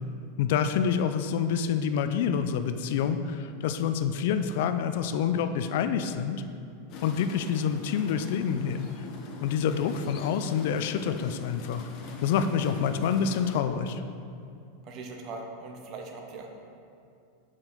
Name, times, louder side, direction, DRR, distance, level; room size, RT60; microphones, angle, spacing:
voice 1, 0.4-6.4 7.0-9.1 9.4-11.9 12.2-14.0, left 7 dB, 65° left, 9 dB, 0.3 m, -27 dB
sound 1, 6.9-13.6, left 3 dB, 45° left, 0.7 m, -43 dB
voice 2, 14.8-16.5, right 3 dB, 45° right, 2 dB, 0.8 m, -40 dB
6.0 x 4.4 x 3.8 m, 2.5 s
supercardioid pair, 125°, 0 cm